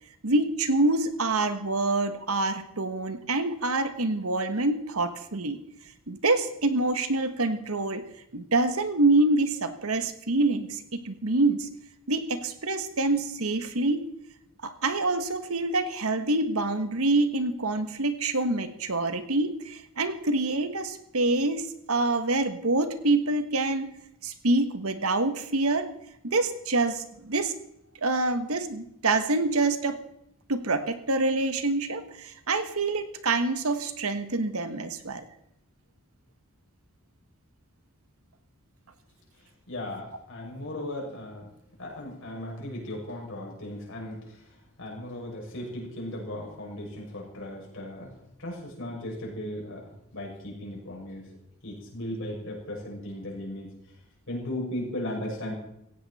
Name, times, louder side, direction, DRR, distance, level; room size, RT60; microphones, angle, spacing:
voice 1, 0.2-5.6 6.1-8.0 8.3-11.7 12.1-14.1 14.6-23.9 24.2-25.9 26.2-27.5 28.0-30.0 30.5-35.2, right 2 dB, 75° right, 9 dB, 1.5 m, -26 dB
voice 2, 39.7-41.5 41.8-44.4 44.8-48.1 48.4-51.3 51.6-53.7 54.3-55.5, left 1 dB, 60° left, -2 dB, 6.6 m, -36 dB
17.0 x 15.5 x 4.3 m, 0.79 s
head